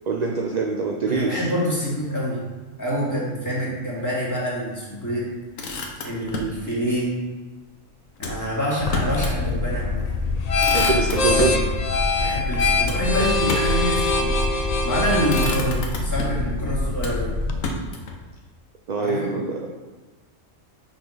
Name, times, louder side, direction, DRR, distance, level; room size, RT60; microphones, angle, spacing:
voice 1, 0.1-1.5 10.7-11.5 18.9-19.6, right 4 dB, 55° right, 1 dB, 0.4 m, -24 dB
voice 2, 1.1-2.4 2.8-5.3 6.0-7.1 8.2-10.0 12.2-17.3 19.0-19.3, equal, 15° left, -7 dB, 2.0 m, -26 dB
Motor vehicle (road), 5.3-6.6 8.2-9.4 9.8-9.9 10.2-11.6 12.9-13.9 14.7-15.0 15.3-16.5 17.0-18.2, left 2 dB, 90° left, 1.3 m, -32 dB
sound 1, 8.8-17.6, left 3 dB, 50° left, 0.4 m, -23 dB
6.1 x 4.1 x 4.8 m, 1.3 s
omnidirectional pair, 1.3 m